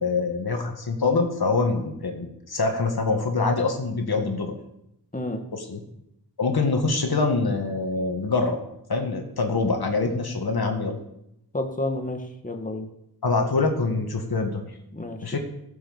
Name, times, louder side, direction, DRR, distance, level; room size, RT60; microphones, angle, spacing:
voice 1, 0.0-4.6 5.5-5.8 6.4-8.6 8.9-11.0 13.2-14.6 15.2-15.4, left 3 dB, 65° left, 4 dB, 2.0 m, -24 dB
voice 2, 11.5-12.9 14.9-15.4, left 2 dB, 20° left, 4 dB, 1.8 m, -30 dB
15.0 x 7.2 x 7.2 m, 0.81 s
wide cardioid pair, 80°, 39 cm